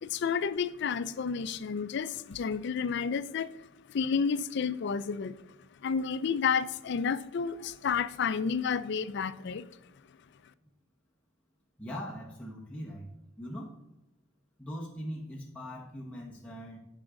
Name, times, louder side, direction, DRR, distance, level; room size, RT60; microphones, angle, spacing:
voice 1, 0.0-3.5 3.9-5.4 5.8-9.7, left 6 dB, 60° left, 0.4 m, -31 dB
voice 2, 11.8-13.1 13.4-13.7 14.6-16.8, equal, 5° left, 1.0 m, -41 dB
9.5 x 4.9 x 3.7 m
head